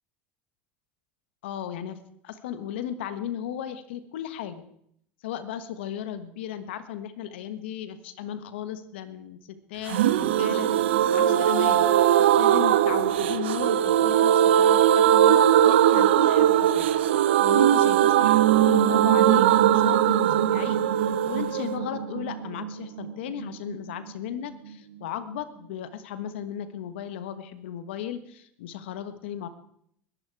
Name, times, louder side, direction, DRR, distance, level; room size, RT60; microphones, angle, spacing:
voice 1, 1.4-4.6 5.2-11.9 12.4-29.5, left 10 dB, 85° left, 12 dB, 1.4 m, -36 dB
sound 1, 9.9-23.5 23.8-23.9 24.1-24.2, right 11 dB, 90° right, 0.7 m, -20 dB
21.5 x 11.5 x 4.8 m, 0.70 s
supercardioid pair, 95°, 6 cm